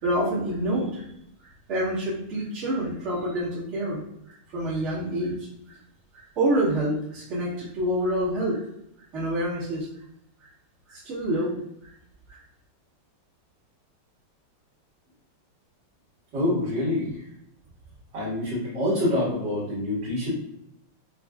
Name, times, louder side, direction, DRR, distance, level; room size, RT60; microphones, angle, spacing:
voice 1, 0.0-1.1 1.7-4.0 4.5-5.8 6.1-8.6 9.1-9.9 10.9-11.6 12.3-12.4, right 1 dB, 35° right, -11 dB, 1.7 m, -27 dB
voice 2, 16.3-17.3 18.1-20.3, left 1 dB, 60° right, -11 dB, 2.3 m, -26 dB
6.1 x 2.5 x 2.4 m, 0.76 s
omnidirectional pair, 2.3 m